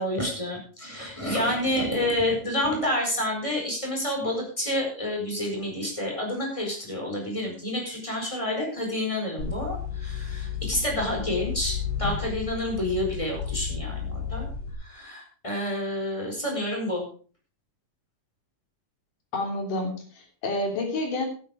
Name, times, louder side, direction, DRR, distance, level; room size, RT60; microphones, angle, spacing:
voice 1, 0.0-14.5 14.8-17.0, left 1 dB, 10° left, 0 dB, 4.7 m, -29 dB
sound 1, 9.4-14.7, left 6 dB, 65° left, 6.0 m, -32 dB
voice 2, 19.3-21.3, left 2 dB, 80° left, 2 dB, 4.8 m, -29 dB
12.0 x 9.9 x 5.0 m, 0.41 s
omnidirectional pair, 3.6 m